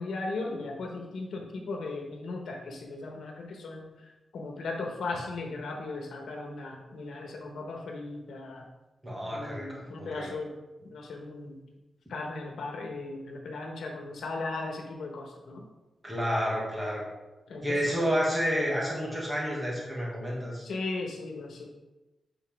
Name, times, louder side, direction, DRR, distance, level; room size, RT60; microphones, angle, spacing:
voice 1, 0.0-8.7 9.3-10.5 10.8-11.6 12.1-15.6 17.5-17.9 20.6-21.7, left 3 dB, 85° left, 2 dB, 1.2 m, -37 dB
voice 2, 9.0-10.3 16.0-17.0 17.6-20.6, equal, 10° right, -5 dB, 1.8 m, -30 dB
8.3 x 4.2 x 3.5 m, 1.0 s
wide cardioid pair, 170°, 0 cm